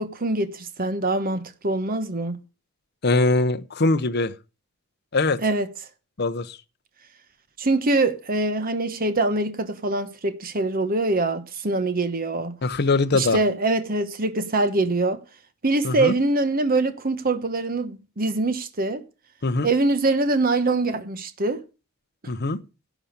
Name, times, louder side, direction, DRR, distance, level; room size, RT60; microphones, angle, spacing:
voice 1, 0.0-2.4 5.4-5.7 7.6-12.5 13.1-15.2 15.6-19.0 19.6-21.6, right 2 dB, 45° right, 1.2 m, -24 dB
voice 2, 3.0-4.3 5.1-5.4 6.2-6.6 12.6-13.4 15.8-16.1 19.4-19.7 22.3-22.6, left 3 dB, 50° left, 0.8 m, -22 dB
11.5 x 7.1 x 6.6 m
head